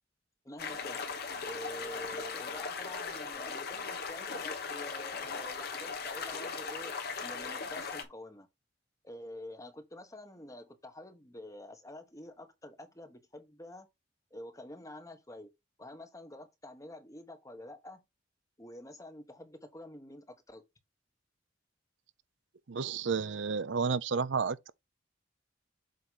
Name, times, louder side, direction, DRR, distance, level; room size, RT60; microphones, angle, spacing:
voice 1, 0.4-1.1 1.5-8.5 9.0-13.9 14.3-15.5 15.8-18.0 18.6-20.6, left 1 dB, 20° left, 1.3 m, -48 dB
sound 1, 0.6-8.0, left 5 dB, 55° left, 1.3 m, -38 dB
voice 2, 22.7-24.7, right 5 dB, 75° right, 0.6 m, -31 dB
7.8 x 3.1 x 5.5 m
head